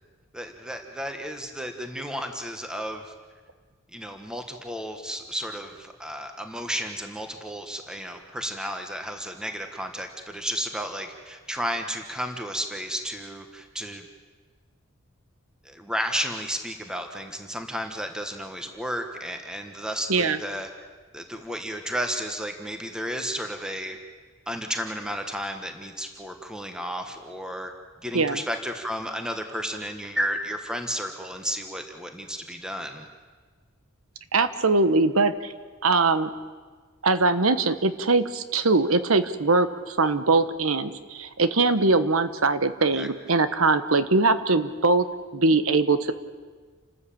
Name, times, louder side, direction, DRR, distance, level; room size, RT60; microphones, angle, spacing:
voice 1, 0.3-3.1 3.9-14.0 15.6-20.7 21.1-24.0 24.5-27.7 28.0-33.1 42.8-43.1, equal, 5° right, 5 dB, 1.4 m, -33 dB
voice 2, 34.3-35.5 35.8-36.3 37.0-45.0 45.3-46.1, right 3 dB, 85° right, 12 dB, 1.2 m, -22 dB
29.0 x 13.5 x 8.6 m, 1.5 s
head